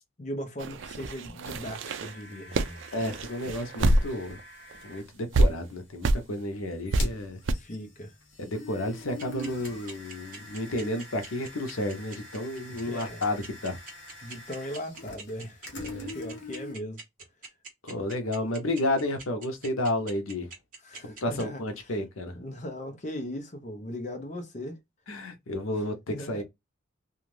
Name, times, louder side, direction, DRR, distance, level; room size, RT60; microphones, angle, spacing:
voice 1, 0.2-2.8 7.5-8.1 12.8-13.2 14.2-15.6 16.1-17.0 20.8-22.0 22.3-24.8 25.7-26.4, equal, 35° left, 0.6 m, -38 dB
sound 1, 0.6-4.4 4.7-4.8 5.3-5.5 6.0-6.2 6.9-7.0 7.5-7.6, right 2 dB, 65° right, 0.4 m, -26 dB
sound 2, 1.8-5.0 6.7-16.7, left 1 dB, 65° left, 1.0 m, -44 dB
voice 2, 2.9-4.4 4.8-7.4 8.4-13.8 15.8-16.1 17.8-20.5 21.0-22.3 25.1-26.4, left 1 dB, 90° left, 0.7 m, -31 dB
sound 3, 9.2-21.4, right 4 dB, 40° right, 1.1 m, -43 dB
2.6 x 2.3 x 3.2 m
head